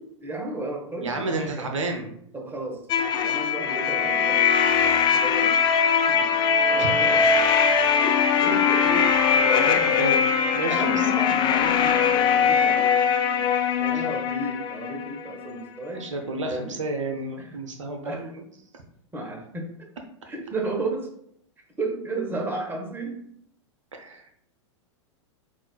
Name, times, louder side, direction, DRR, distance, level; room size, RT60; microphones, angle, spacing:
voice 1, 0.0-1.7 2.3-2.8 3.1-4.4 4.8-5.6 6.1-7.2 8.0-9.9 10.7-12.9 13.8-16.8 17.4-17.6 18.0-18.3 19.1-19.7 20.2-21.1 21.8-23.2, right 2 dB, 15° right, 1 dB, 0.9 m, -33 dB
voice 2, 1.0-2.1 6.8-6.9 9.6-10.9 13.3-13.4 13.8-14.0 15.9-18.4 23.9-24.2, right 2 dB, 80° right, 4 dB, 0.6 m, -31 dB
sound 1, 2.9-15.6, left 6 dB, 30° left, 0.4 m, -21 dB
5.6 x 2.4 x 2.3 m, 0.68 s
hypercardioid pair, 100°, 16 cm